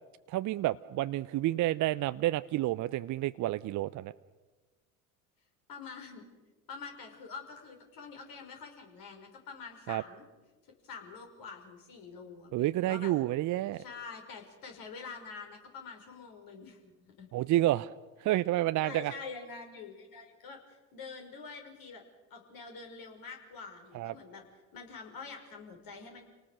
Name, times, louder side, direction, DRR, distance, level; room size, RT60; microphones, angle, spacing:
voice 1, 0.3-4.1 9.9-10.0 12.5-13.8 17.3-17.9 18.2-19.1 23.9-24.1, right 15 dB, 45° right, 13 dB, 0.7 m, -29 dB
voice 2, 5.7-6.3 6.7-10.3 10.8-13.1 13.7-17.3 18.8-22.0 22.3-24.4 24.7-26.2, left 5 dB, 55° left, 3 dB, 5.9 m, -46 dB
28.5 x 19.0 x 6.5 m, 1.2 s
hypercardioid pair, 65°, 42 cm